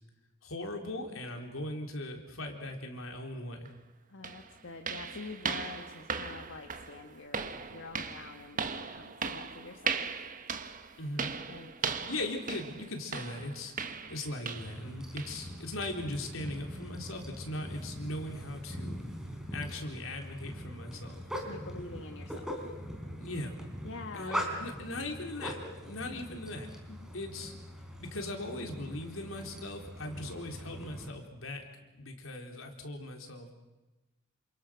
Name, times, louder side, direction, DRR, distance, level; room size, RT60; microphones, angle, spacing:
voice 1, 0.4-3.7 11.0-11.3 12.1-13.7 14.1-19.0 19.5-21.2 23.2-23.5 24.1-26.7 27.1-27.5 28.0-31.7 32.0-33.5, left 1 dB, 85° left, 3 dB, 3.9 m, -39 dB
sound 1, 3.6-3.7 4.2-14.9 15.2-15.4 15.8-16.0 16.5-16.6 17.1-17.2, right 5 dB, 40° right, 1.3 m, -38 dB
voice 2, 4.1-8.6 8.9-10.2 11.5-12.2 21.4-22.7 23.8-24.6 26.9-27.1, left 3 dB, 65° left, 4 dB, 1.6 m, -46 dB
sound 2, 14.5-31.1, equal, 5° right, 4.3 m, -42 dB
28.5 x 27.0 x 6.4 m, 1.1 s
head